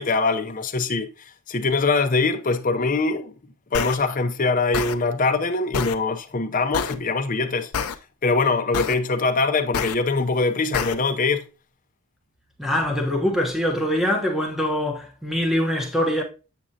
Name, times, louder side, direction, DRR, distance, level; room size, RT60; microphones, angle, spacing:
voice 1, 0.0-3.3 3.7-7.7 8.2-11.4, left 3 dB, 35° left, 0.6 m, -23 dB
sound 1, 3.7-3.9 4.7-5.0 5.7-6.0 6.7-7.0 7.7-7.9 8.7-9.0 9.7-9.9 10.7-10.9, left 6 dB, 80° left, 0.5 m, -26 dB
voice 2, 12.6-16.2, left 1 dB, ahead, 1.0 m, -23 dB
7.5 x 6.2 x 2.8 m
head